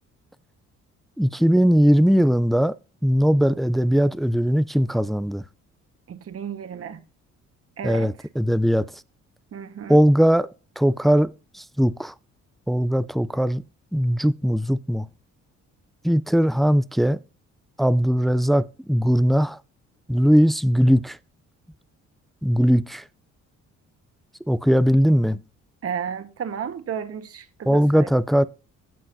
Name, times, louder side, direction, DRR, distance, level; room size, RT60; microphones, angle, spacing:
voice 1, 1.2-2.8 3.0-5.4 7.8-9.0 9.9-12.1 12.7-13.6 13.9-15.1 16.0-17.2 17.8-19.6 20.1-21.2 22.4-23.0 24.5-25.4 27.7-28.4, equal, ahead, 0.4 m, -19 dB
voice 2, 6.1-7.0 7.8-8.1 9.5-10.0 25.8-28.1, right 7 dB, 50° right, 1.4 m, -33 dB
16.0 x 5.6 x 2.7 m
cardioid pair, 90°, 30 cm